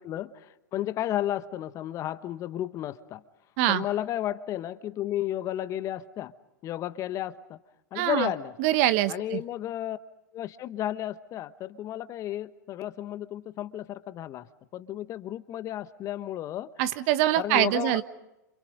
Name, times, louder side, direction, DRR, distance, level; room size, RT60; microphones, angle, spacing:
voice 1, 0.0-3.2 3.7-6.3 6.6-7.6 7.9-8.5 9.1-10.0 10.3-14.5 14.7-16.7 17.4-18.0, left 12 dB, 30° left, 13 dB, 1.0 m, -33 dB
voice 2, 7.9-8.3 8.6-9.4 16.8-18.0, right 14 dB, 45° right, 12 dB, 1.2 m, -24 dB
29.0 x 27.0 x 5.4 m, 0.92 s
figure-of-eight pair, 100°, 10 cm